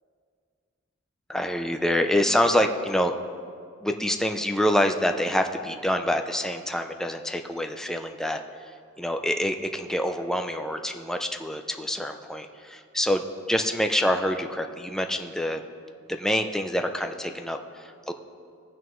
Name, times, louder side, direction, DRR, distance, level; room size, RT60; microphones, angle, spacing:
voice 1, 1.3-3.2 3.8-8.4 9.0-15.6 16.1-18.1, equal, 5° left, 5 dB, 0.5 m, -26 dB
19.0 x 9.2 x 3.1 m, 2.3 s
head